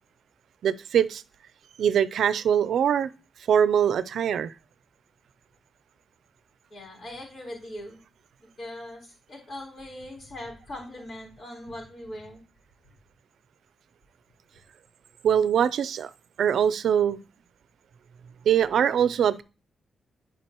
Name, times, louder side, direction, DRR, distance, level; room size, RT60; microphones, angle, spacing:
voice 1, 0.6-1.2 1.8-3.1 3.5-4.5 15.2-16.1 16.4-17.2 18.5-19.4, right 8 dB, 80° right, 0.5 m, -22 dB
voice 2, 6.7-8.0 8.4-12.4, left 1 dB, 50° left, 4.0 m, -40 dB
11.0 x 5.0 x 3.0 m
cardioid pair, 100°, 0 cm